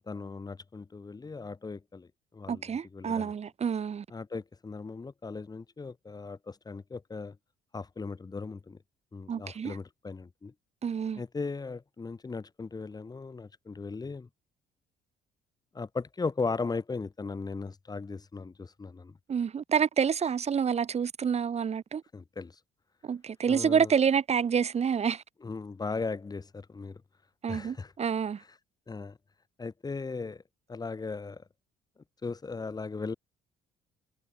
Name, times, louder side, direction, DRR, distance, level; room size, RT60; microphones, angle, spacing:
voice 1, 0.1-2.1 2.3-3.3 4.1-7.4 7.7-8.8 9.1-10.5 11.2-14.3 15.7-19.1 22.1-22.6 23.5-23.9 25.4-27.0 27.5-27.9 28.4-28.6 28.9-29.2 29.6-30.4 30.7-31.4 32.2-33.2, left 4 dB, 25° left, 5.4 m, -37 dB
voice 2, 2.5-4.0 9.3-9.8 10.8-11.2 19.3-22.0 23.0-25.2 27.4-28.4, right 7 dB, 40° right, 4.1 m, -28 dB
cardioid pair, 110°, 17 cm